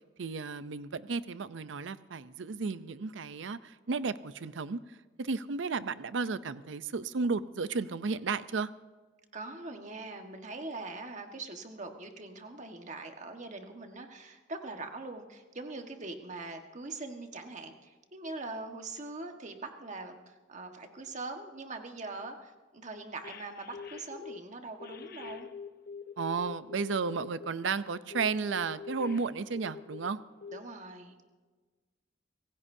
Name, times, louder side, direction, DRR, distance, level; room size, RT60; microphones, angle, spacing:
voice 1, 0.2-4.8 5.2-8.7 26.2-30.2, right 4 dB, 90° right, 15 dB, 0.6 m, -33 dB
voice 2, 9.3-25.5 30.5-31.1, right 3 dB, 40° right, 5 dB, 1.4 m, -42 dB
sound 1, 23.2-24.4 24.8-27.5 28.1-30.1 30.4-30.6, left 6 dB, 55° left, 0.9 m, -44 dB
26.0 x 16.5 x 2.7 m, 1.4 s
head